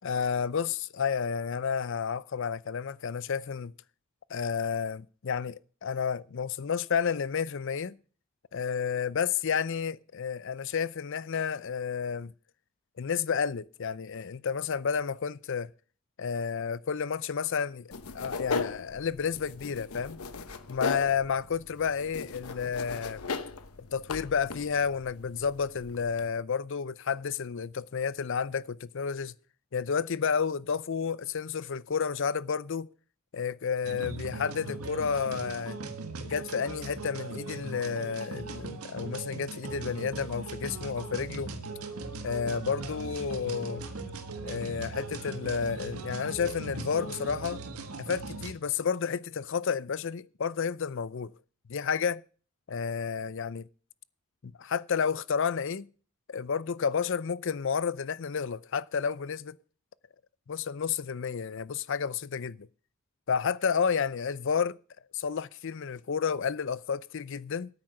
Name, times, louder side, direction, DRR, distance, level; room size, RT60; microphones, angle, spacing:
voice 1, 0.0-3.7 4.3-8.0 8.5-12.3 13.0-15.7 16.2-17.7 18.2-20.2 20.7-23.2 23.9-29.3 29.7-32.9 33.3-35.8 36.2-41.5 42.2-43.8 44.4-47.6 48.0-51.3 51.7-52.2 52.7-53.6 54.4-55.9 56.3-59.6 60.5-62.7 63.3-64.8 65.1-67.7, left 6 dB, 60° left, 0.5 m, -31 dB
sound 1, 17.9-26.3, left 4 dB, 80° left, 1.0 m, -38 dB
sound 2, 33.8-48.5, right 3 dB, 85° right, 1.6 m, -39 dB
9.6 x 9.0 x 6.4 m
head